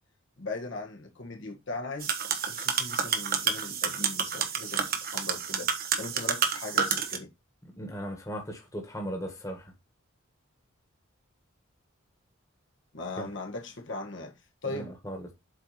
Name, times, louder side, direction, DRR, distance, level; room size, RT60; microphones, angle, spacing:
voice 1, 0.4-2.2 2.5-5.7 6.0-7.3 12.9-14.4 14.6-14.9, left 3 dB, 60° left, 1.5 m, -39 dB
sound 1, 2.0-7.2, right 6 dB, 45° right, 1.2 m, -29 dB
voice 2, 7.8-9.7 13.2-13.3 14.6-15.3, equal, 15° left, 1.7 m, -37 dB
7.9 x 4.5 x 4.3 m
head